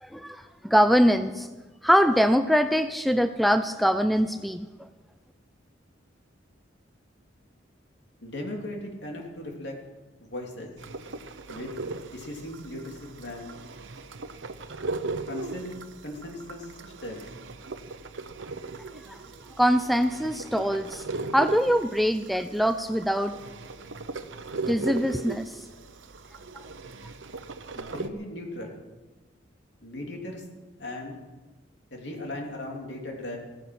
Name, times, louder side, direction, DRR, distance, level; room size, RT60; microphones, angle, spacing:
voice 1, 0.0-1.5 1.8-4.9 19.1-19.2 19.6-21.0 21.3-23.4 24.7-25.5, equal, ahead, 9 dB, 0.4 m, -23 dB
voice 2, 8.2-9.7 10.3-10.7 11.5-11.7 12.1-13.5 15.3-15.7 16.0-16.7 17.0-17.2 27.7-28.8 29.8-30.4 30.8-31.2 31.9-33.4, left 1 dB, 65° left, 0 dB, 3.3 m, -37 dB
sound 1, 10.8-28.1, right 3 dB, 90° right, 1.0 m, -38 dB
15.5 x 14.5 x 6.2 m, 1.2 s
head